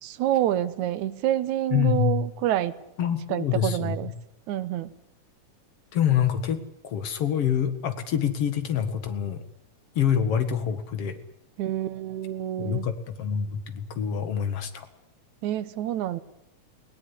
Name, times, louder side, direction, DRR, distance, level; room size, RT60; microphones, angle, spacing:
voice 1, 0.0-2.7 3.3-4.1 4.5-4.9 11.6-12.9 15.4-16.2, right 12 dB, 80° right, 13 dB, 2.4 m, -27 dB
voice 2, 1.7-2.2 3.0-4.1 5.9-9.4 10.0-11.2 12.6-14.9, left 9 dB, 55° left, 9 dB, 2.6 m, -26 dB
20.0 x 18.0 x 10.0 m, 0.79 s
omnidirectional pair, 3.4 m